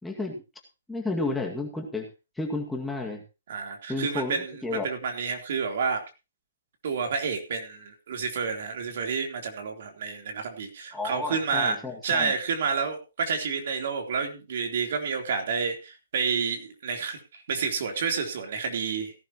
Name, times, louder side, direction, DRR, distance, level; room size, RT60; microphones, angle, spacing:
voice 1, 0.0-0.4 0.9-2.1 2.4-3.2 3.9-4.4 4.6-4.9 10.9-12.3, left 3 dB, 5° left, 1 dB, 2.1 m, -31 dB
voice 2, 3.5-6.0 6.8-11.8 12.0-19.1, right 5 dB, 60° right, 4 dB, 3.5 m, -29 dB
17.5 x 11.5 x 3.0 m, 0.29 s
hypercardioid pair, 145°, 0 cm